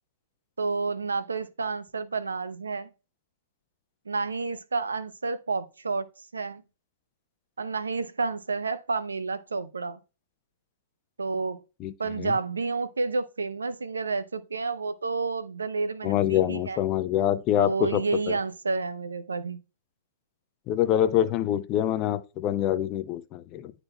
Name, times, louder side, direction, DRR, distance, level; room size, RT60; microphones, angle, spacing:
voice 1, 0.6-2.9 4.1-6.0 6.3-6.6 7.6-10.0 11.2-11.6 12.0-16.8 17.6-19.6, right 4 dB, 85° right, 0.6 m, -30 dB
voice 2, 11.8-12.3 16.0-18.4 20.7-23.7, left 11 dB, 35° left, 0.6 m, -26 dB
10.5 x 4.0 x 2.2 m
hypercardioid pair, 115°, 0 cm